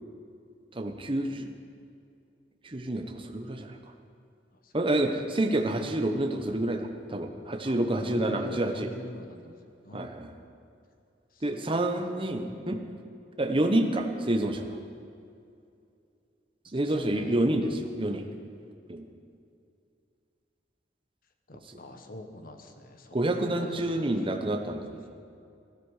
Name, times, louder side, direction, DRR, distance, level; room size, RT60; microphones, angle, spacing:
voice 1, 0.7-1.5 2.6-3.8 4.7-8.9 9.9-10.3 11.4-12.8 13.4-14.8 16.7-18.3 18.9-19.1 23.1-25.0, right 1 dB, 30° right, 5 dB, 0.9 m, -28 dB
voice 2, 7.6-9.6 9.8-10.1 11.3-11.6 16.8-17.4 21.5-24.0 24.9-25.1, left 1 dB, 55° left, 6 dB, 1.2 m, -44 dB
17.5 x 12.5 x 4.9 m, 2.5 s
head